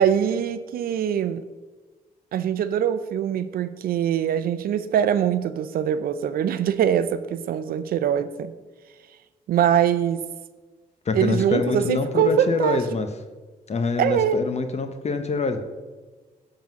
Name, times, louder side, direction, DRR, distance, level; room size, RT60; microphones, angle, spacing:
voice 1, 0.0-1.4 2.3-8.5 9.5-10.3 11.1-12.8 14.0-14.4, right 9 dB, 75° right, 13 dB, 0.4 m, -23 dB
voice 2, 11.1-13.1 13.7-15.6, left 4 dB, 45° left, 8 dB, 0.8 m, -25 dB
7.3 x 3.7 x 6.1 m, 1.3 s
cardioid pair, 60°, 15 cm